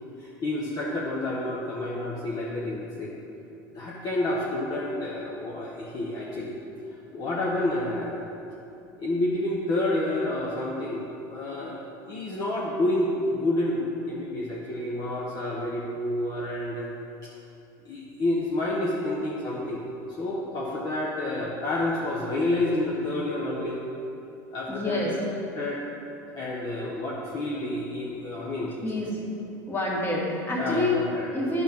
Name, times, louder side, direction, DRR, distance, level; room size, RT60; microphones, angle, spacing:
voice 1, 0.2-3.1 3.7-6.6 6.9-8.2 9.0-16.9 17.2-17.3 17.8-19.8 20.1-23.8 24.5-25.1 25.5-25.8 26.3-28.7 30.6-31.3, left 1 dB, 40° left, -5 dB, 1.1 m, -29 dB
voice 2, 24.7-25.1 28.8-29.2 29.7-31.0 31.3-31.6, left 1 dB, 20° left, -4 dB, 2.0 m, -28 dB
9.9 x 6.1 x 3.7 m, 2.7 s
supercardioid pair, 115°, 10 cm